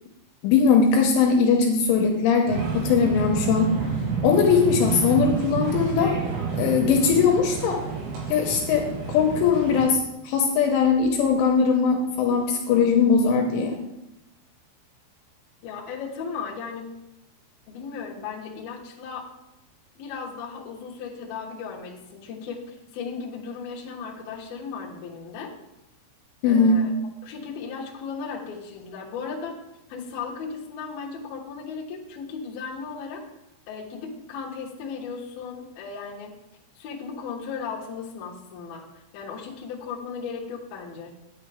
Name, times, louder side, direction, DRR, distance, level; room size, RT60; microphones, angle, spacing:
voice 1, 0.4-3.7 4.2-6.1 6.6-7.8 8.3-13.8 26.4-26.8, left 5 dB, 80° left, 2 dB, 3.2 m, -20 dB
sound 1, 2.5-9.9, right 6 dB, 75° right, 5.0 m, -29 dB
voice 2, 15.6-16.9 17.7-19.3 20.0-25.5 26.4-26.9 27.2-29.6 29.9-33.2 33.7-36.3 36.8-41.2, left 5 dB, 65° left, -2 dB, 2.6 m, -36 dB
9.3 x 9.3 x 3.4 m, 0.92 s
omnidirectional pair, 5.9 m